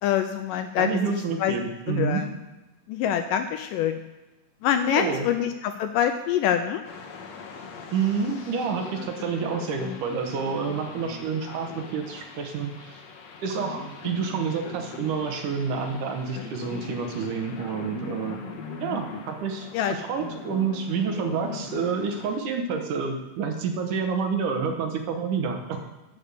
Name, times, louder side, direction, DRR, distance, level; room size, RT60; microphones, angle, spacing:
voice 1, 0.0-1.0 1.4-1.6 1.9-2.3 2.9-4.0 4.6-6.8 19.7-20.0, left 9 dB, 80° left, 8 dB, 2.0 m, -25 dB
voice 2, 0.8-2.2 4.9-5.3 7.9-13.0 13.4-18.4 18.8-25.8, right 5 dB, 70° right, 4 dB, 2.3 m, -28 dB
sound 1, 6.8-22.4, left 5 dB, 65° left, 1.9 m, -40 dB
12.0 x 5.4 x 7.9 m, 1.1 s
omnidirectional pair, 4.2 m